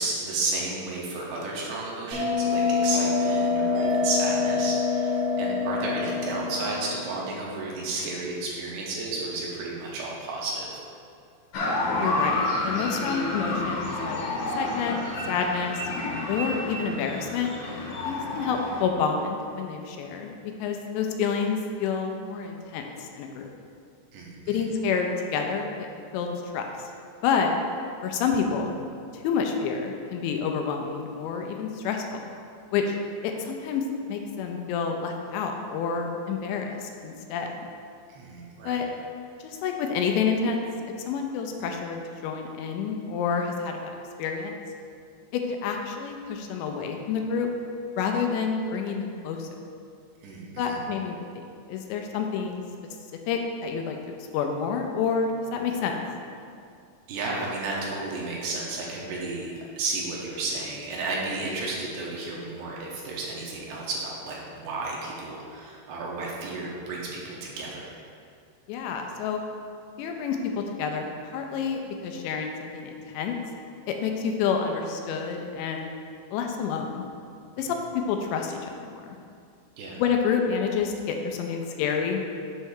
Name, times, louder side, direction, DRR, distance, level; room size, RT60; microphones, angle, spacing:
voice 1, 0.0-10.7 24.1-24.6 38.1-38.8 50.2-50.8 57.1-67.9 79.8-80.0, right 3 dB, 75° right, -4 dB, 2.9 m, -32 dB
Bell, 2.1-7.2, left 4 dB, 45° right, 1.4 m, -25 dB
sound 1, 11.5-18.8, left 2 dB, 65° left, 1.9 m, -30 dB
voice 2, 12.0-14.2 14.6-15.0 15.3-15.8 16.3-17.5 18.0-20.3 20.6-23.5 24.5-25.9 26.1-26.6 27.2-27.5 28.0-28.7 29.1-32.3 32.7-32.9 33.2-37.7 38.7-38.9 39.4-40.6 41.1-43.9 44.2-44.5 45.3-47.5 48.0-49.5 50.6-51.4 51.7-52.6 53.3-54.0 54.3-55.9 68.7-69.4 70.0-71.0 71.3-73.4 73.9-75.9 76.3-77.0 77.6-79.1 80.0-82.2, left 6 dB, 85° left, 3 dB, 2.8 m, -28 dB
8.1 x 3.3 x 6.4 m, 2.3 s
omnidirectional pair, 5.1 m